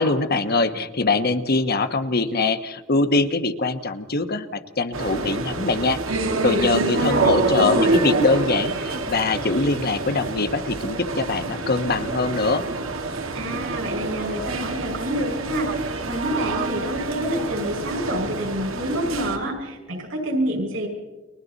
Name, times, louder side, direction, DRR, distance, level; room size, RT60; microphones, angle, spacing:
voice 1, 0.0-6.0 6.4-12.7, left 3 dB, 50° left, 9 dB, 1.2 m, -23 dB
sound 1, 4.9-19.4, right 2 dB, 90° right, 2.1 m, -27 dB
voice 2, 6.9-8.0 13.3-20.9, right 1 dB, 75° right, 2 dB, 5.8 m, -27 dB
30.0 x 23.0 x 4.1 m, 1.1 s
head